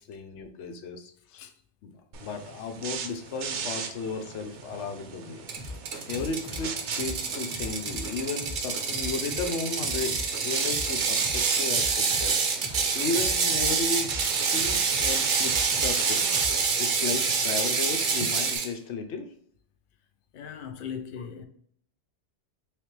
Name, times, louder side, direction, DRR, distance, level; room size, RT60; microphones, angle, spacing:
voice 1, 0.1-1.1 1.8-5.5 6.1-12.4 12.9-14.2 14.5-16.3 16.8-19.3, left 4 dB, 80° left, 0.9 m, -34 dB
sound 1, 2.1-18.6, right 6 dB, 80° right, 0.9 m, -38 dB
Ratchet pawl, 5.5-18.7, right 5 dB, 55° right, 0.7 m, -27 dB
sound 2, 5.6-16.7, left 1 dB, 15° left, 0.6 m, -40 dB
voice 2, 20.3-21.4, left 7 dB, 60° left, 0.6 m, -39 dB
3.3 x 3.2 x 3.1 m
omnidirectional pair, 1.2 m